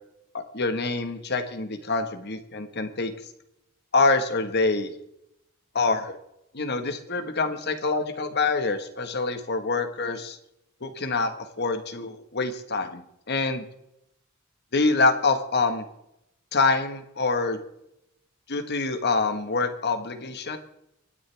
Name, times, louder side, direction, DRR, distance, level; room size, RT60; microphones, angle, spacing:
voice 1, 0.3-3.1 3.9-4.9 5.7-6.2 6.5-10.4 10.8-13.6 14.7-15.8 16.5-17.6 18.5-20.6, left 3 dB, 50° left, 7 dB, 1.6 m, -26 dB
24.5 x 10.0 x 3.5 m, 0.81 s
head